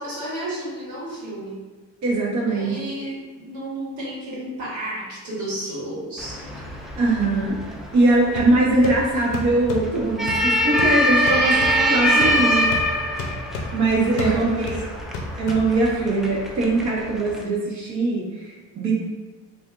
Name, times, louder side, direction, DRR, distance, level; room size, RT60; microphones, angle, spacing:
voice 1, 0.0-1.6 2.4-6.5 11.2-12.7 14.0-14.7, right 1 dB, 90° right, -7 dB, 1.4 m, -31 dB
voice 2, 2.0-2.8 7.0-7.6 7.9-11.5 11.9-12.7 13.7-14.9 15.4-18.9, right 2 dB, 70° right, -4 dB, 1.0 m, -21 dB
sound 1, 6.2-17.4, equal, ahead, 0.3 m, -24 dB
sound 2, 8.4-16.1, left 2 dB, 90° left, 0.5 m, -34 dB
3.4 x 2.5 x 2.4 m, 1.2 s
cardioid pair, 90°, 30 cm